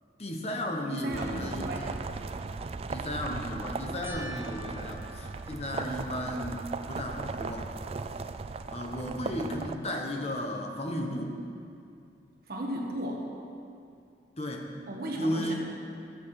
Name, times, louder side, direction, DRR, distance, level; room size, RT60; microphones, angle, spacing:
voice 1, 0.2-2.0 2.9-7.7 8.7-11.4 14.4-14.7 15.1-15.5, left 1 dB, 35° left, 2 dB, 1.0 m, -34 dB
voice 2, 0.9-1.9 12.5-13.2 14.9-15.5, equal, 55° right, -1 dB, 1.3 m, -35 dB
sound 1, 1.1-9.8, right 4 dB, 35° right, 0.3 m, -37 dB
sound 2, 4.0-6.6 7.2-7.8 8.2-8.3 11.5-11.6, right 1 dB, 15° right, 0.7 m, -48 dB
13.5 x 8.1 x 4.8 m, 2.5 s
head